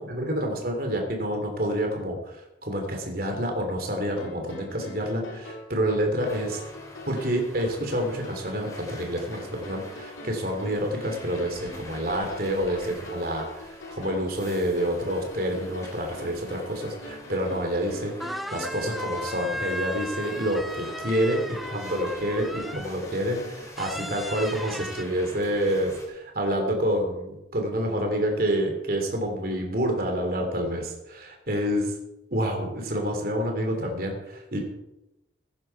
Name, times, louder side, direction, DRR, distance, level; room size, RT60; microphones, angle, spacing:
voice 1, 0.0-6.6 7.1-18.1 18.5-31.9 32.3-34.6, equal, 50° right, 2 dB, 3.1 m, -28 dB
sound 1, 4.2-23.6, left 1 dB, 90° left, 2.6 m, -43 dB
sound 2, 6.2-26.1, left 1 dB, 15° left, 3.0 m, -47 dB
sound 3, 17.8-17.9 18.2-23.0 23.8-25.1, equal, ahead, 0.4 m, -36 dB
16.0 x 11.0 x 4.8 m, 0.92 s
head